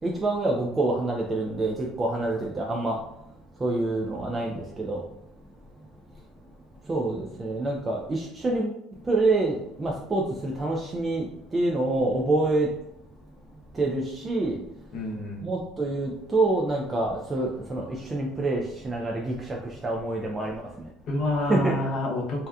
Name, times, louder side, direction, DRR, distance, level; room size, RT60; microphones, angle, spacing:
voice 1, 0.0-3.0 3.6-5.0 6.8-8.8 9.0-12.7 13.7-14.6 15.4-20.9 21.5-21.8, right 2 dB, 25° right, -1 dB, 0.4 m, -27 dB
voice 2, 14.9-15.5 21.1-22.5, left 1 dB, 55° left, -2 dB, 0.8 m, -28 dB
2.7 x 2.1 x 2.3 m, 0.81 s
hypercardioid pair, 80°, 0 cm